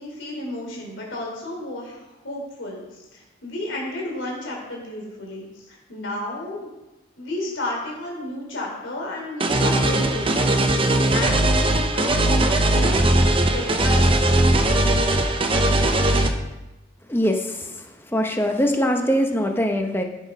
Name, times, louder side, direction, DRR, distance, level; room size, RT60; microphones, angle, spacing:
voice 1, 0.0-6.7 7.2-10.6 10.8-13.0 13.5-14.3, left 1 dB, 75° left, -2 dB, 3.2 m, -32 dB
sound 1, 9.4-16.3, right 1 dB, 30° right, 0.8 m, -19 dB
voice 2, 17.1-20.0, equal, 10° left, 3 dB, 0.9 m, -23 dB
12.5 x 6.2 x 5.3 m, 1.0 s
head